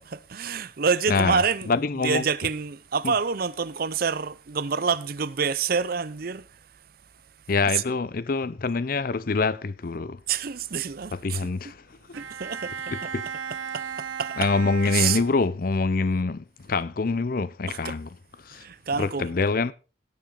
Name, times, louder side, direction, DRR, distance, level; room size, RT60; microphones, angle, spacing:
voice 1, 0.0-6.5 7.7-7.8 10.3-11.5 12.1-12.9 13.7-14.5 14.8-15.2 17.7-17.9 18.5-19.3, right 6 dB, 50° right, 0.6 m, -27 dB
voice 2, 1.1-2.2 3.0-3.1 7.5-10.2 11.1-11.8 12.1-12.2 12.9-13.3 14.4-18.1 18.4-18.7 19.0-19.7, left 4 dB, 45° left, 0.5 m, -25 dB
Bowed string instrument, 12.1-15.8, right 7 dB, 85° right, 0.8 m, -36 dB
17.5 x 6.9 x 3.8 m
head